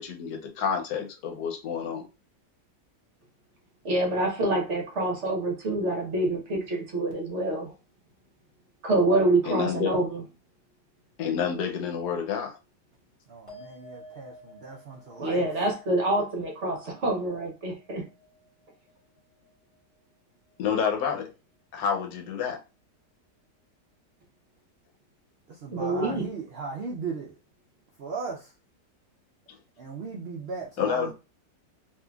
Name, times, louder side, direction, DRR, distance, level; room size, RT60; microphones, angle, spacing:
voice 1, 0.0-2.1 9.4-9.9 11.2-12.6 20.6-21.3 21.7-22.6 30.8-31.1, left 7 dB, 75° left, 1.2 m, -29 dB
voice 2, 3.8-7.7 8.8-10.2 15.2-18.0 25.7-26.3, right 2 dB, 55° right, 1.0 m, -26 dB
voice 3, 13.3-15.5 25.5-27.3 28.0-28.5 29.8-31.1, right 5 dB, 85° right, 0.5 m, -37 dB
sound 1, 13.5-20.2 20.4-21.1, left 1 dB, 25° left, 1.5 m, -53 dB
3.7 x 2.8 x 2.3 m
omnidirectional pair, 1.8 m